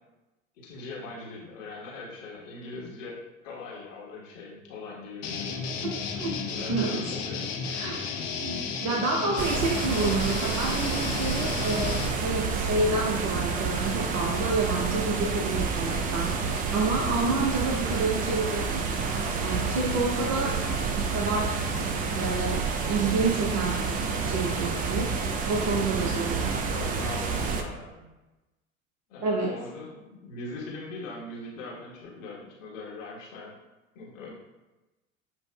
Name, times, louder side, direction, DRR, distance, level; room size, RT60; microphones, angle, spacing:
voice 1, 0.6-5.6 6.5-7.5 26.0-26.3 26.7-28.0 29.1-33.6 33.9-34.3, left 2 dB, 65° left, -4 dB, 1.3 m, -40 dB
sound 1, 5.2-12.1, left 5 dB, 40° left, 0.7 m, -33 dB
voice 2, 5.7-6.4 6.7-7.0 7.7-8.0 8.3-16.3 16.7-20.6 20.9-21.8 22.1-26.7 29.2-29.5, right 3 dB, 40° right, -1 dB, 0.7 m, -29 dB
sound 2, 9.4-27.6, right 5 dB, 25° right, 0.3 m, -29 dB
7.5 x 2.6 x 2.2 m, 1.1 s
figure-of-eight pair, 75°, 41 cm